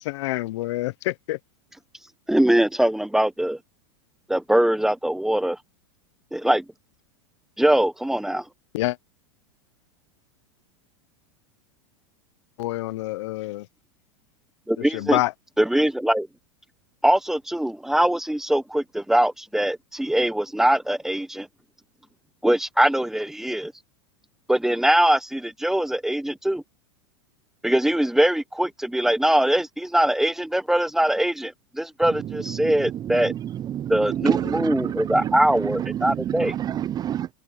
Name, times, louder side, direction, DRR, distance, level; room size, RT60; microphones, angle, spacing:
voice 1, 0.0-1.4 8.7-9.0 12.6-13.7 14.9-15.3, left 18 dB, 70° left, 0.6 m, -27 dB
voice 2, 2.3-3.6 4.3-5.6 6.3-6.6 7.6-8.4 14.7-15.2 15.6-16.3 17.0-21.5 22.4-23.7 24.5-26.6 27.6-33.3 33.9-36.5, right 1 dB, ahead, 1.0 m, -22 dB
voice 3, 32.3-37.3, right 11 dB, 25° right, 0.4 m, -28 dB
hypercardioid pair, 115°, 16 cm